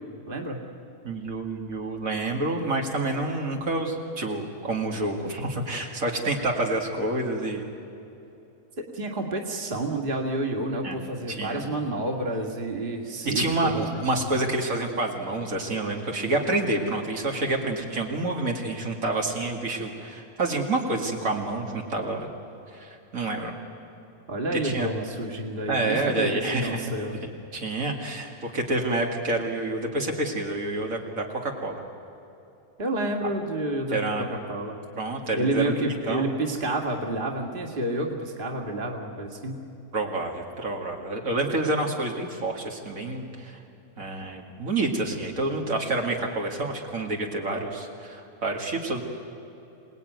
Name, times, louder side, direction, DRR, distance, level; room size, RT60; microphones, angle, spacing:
voice 1, 0.3-0.6 8.9-14.4 24.3-27.2 32.8-34.8 35.4-39.6, right 1 dB, 40° right, 1 dB, 2.3 m, -29 dB
voice 2, 1.0-7.7 10.8-11.0 11.3-11.6 13.2-22.3 22.7-23.5 24.6-24.9 25.7-26.9 27.5-31.8 33.9-34.3 35.0-36.3 39.9-43.6 44.0-49.0, right 2 dB, 70° right, 1 dB, 2.6 m, -28 dB
27.0 x 19.0 x 9.4 m, 2.9 s
omnidirectional pair, 1.5 m